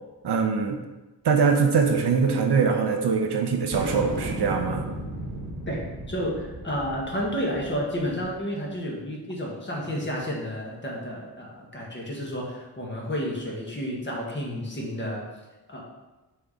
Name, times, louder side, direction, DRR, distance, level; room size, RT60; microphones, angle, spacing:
voice 1, 0.2-0.8 1.2-4.8, right 5 dB, 70° right, 4 dB, 0.8 m, -22 dB
sound 1, 3.7-8.4, right 1 dB, 25° right, 1.4 m, -35 dB
voice 2, 6.1-15.2 15.7-15.8, equal, 25° left, -3 dB, 1.5 m, -31 dB
6.0 x 4.2 x 5.1 m, 1.1 s
wide cardioid pair, 150°, 41 cm